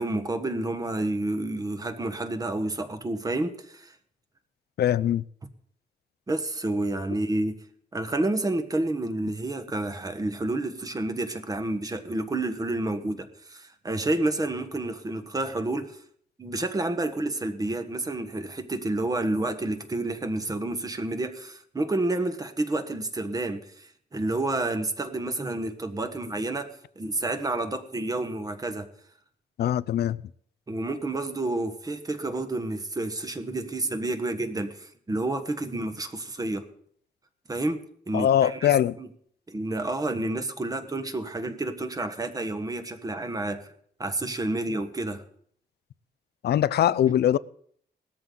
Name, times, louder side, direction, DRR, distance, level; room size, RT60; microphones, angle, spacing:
voice 1, 0.0-3.9 6.3-7.6 7.9-16.0 16.4-28.9 30.7-36.7 37.5-38.7 39.0-39.1 39.5-43.7 44.0-45.2, right 2 dB, 20° right, 1.3 m, -29 dB
voice 2, 4.8-5.2 29.6-30.2 38.1-39.0 46.4-47.4, left 11 dB, 75° left, 0.5 m, -22 dB
18.5 x 13.5 x 3.9 m
wide cardioid pair, 135°, 17 cm